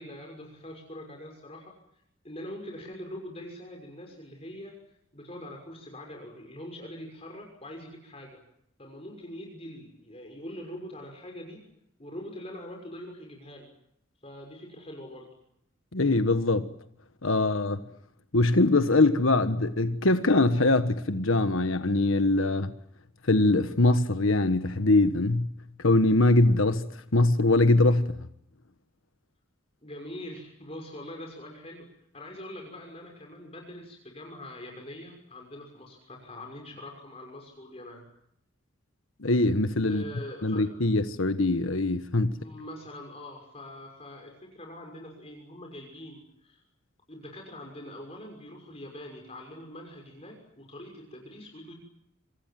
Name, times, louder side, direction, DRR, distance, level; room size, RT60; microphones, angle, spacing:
voice 1, 0.0-1.8 2.2-4.8 5.1-8.4 8.8-11.7 12.0-13.7 14.2-15.3 29.8-38.0 39.9-40.7 42.4-46.6 47.1-51.7, left 1 dB, 30° left, 6.2 m, -43 dB
voice 2, 15.9-16.7 17.2-17.8 18.3-22.7 23.3-25.5 25.8-26.9 27.1-28.1 39.2-40.0 40.4-42.4, left 2 dB, 85° left, 1.5 m, -22 dB
27.0 x 26.0 x 7.7 m
head